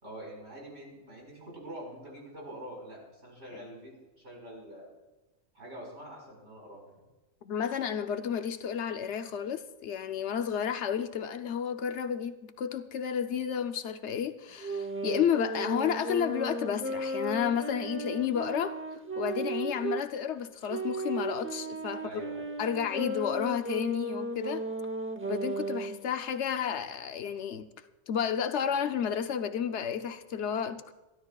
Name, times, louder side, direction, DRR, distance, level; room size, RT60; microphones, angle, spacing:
voice 1, 0.0-4.9 5.5-6.9 22.0-22.4, right 1 dB, 90° right, 5.2 m, -45 dB
voice 2, 7.4-18.7 19.2-22.2 22.6-24.6 25.2-27.7 28.1-30.9, left 8 dB, 85° left, 1.1 m, -31 dB
sound 1, 14.6-20.1 20.7-26.0, right 2 dB, 15° right, 0.6 m, -35 dB
29.0 x 12.5 x 2.4 m
omnidirectional pair, 1.1 m